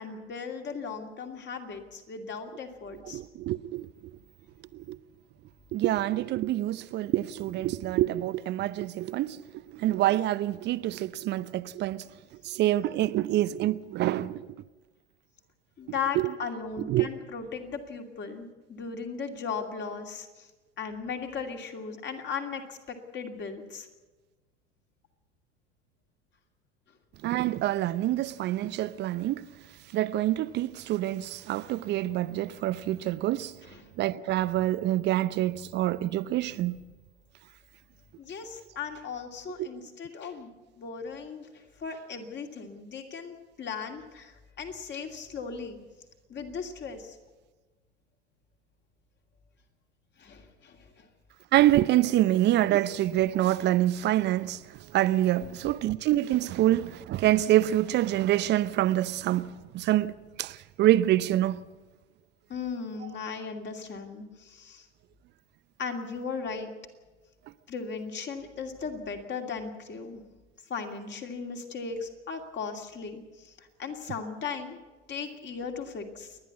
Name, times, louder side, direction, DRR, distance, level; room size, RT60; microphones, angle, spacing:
voice 1, 0.0-3.2 15.8-20.5 20.8-23.9 33.6-33.9 38.2-45.8 46.3-47.2 50.2-51.1 55.4-55.7 62.5-64.9 65.8-66.7 67.7-70.2 70.7-74.8 75.1-76.4, left 5 dB, 30° left, 2.6 m, -37 dB
voice 2, 3.1-3.9 4.7-5.0 5.7-9.4 9.7-12.1 12.4-14.4 16.2-16.3 16.9-17.1 27.2-29.5 29.9-33.5 34.0-36.8 39.6-39.7 51.5-54.6 54.9-59.5 59.7-60.1 60.4-61.6, right 14 dB, 30° right, 0.6 m, -26 dB
29.0 x 11.0 x 8.3 m
figure-of-eight pair, 85°, 36 cm